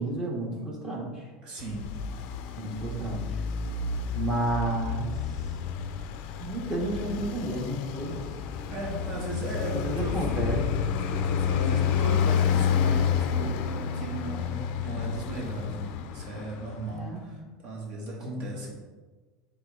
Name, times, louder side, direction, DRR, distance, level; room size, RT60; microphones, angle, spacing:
voice 1, 0.0-1.2 2.6-3.4 4.1-5.0 6.4-8.2 9.7-10.6 16.9-17.2 18.2-18.4, right 1 dB, 25° right, -2 dB, 1.5 m, -31 dB
voice 2, 1.4-1.9 8.7-10.3 10.9-13.6 13.9-18.7, right 1 dB, 50° right, -2 dB, 1.8 m, -36 dB
Traffic noise roadway noise, 1.6-17.1, left 7 dB, 55° left, 0.4 m, -29 dB
7.7 x 3.5 x 3.6 m, 1.3 s
supercardioid pair, 145°, 2 cm